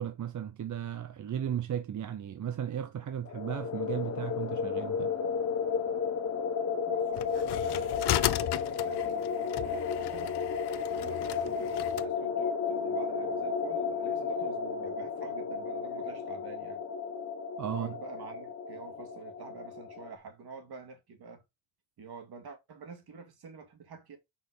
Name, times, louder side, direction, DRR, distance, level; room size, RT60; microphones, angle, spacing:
voice 1, 0.0-5.1 17.6-17.9, right 9 dB, 45° right, 0.7 m, -35 dB
sound 1, 3.2-20.1, left 6 dB, 35° left, 1.0 m, -33 dB
voice 2, 6.9-10.4 10.9-16.8 17.7-21.4 22.0-24.2, right 5 dB, 60° right, 2.2 m, -48 dB
sound 2, 7.2-12.1, left 14 dB, 65° left, 0.6 m, -35 dB
6.4 x 5.6 x 3.9 m
cardioid pair, 150°, 44 cm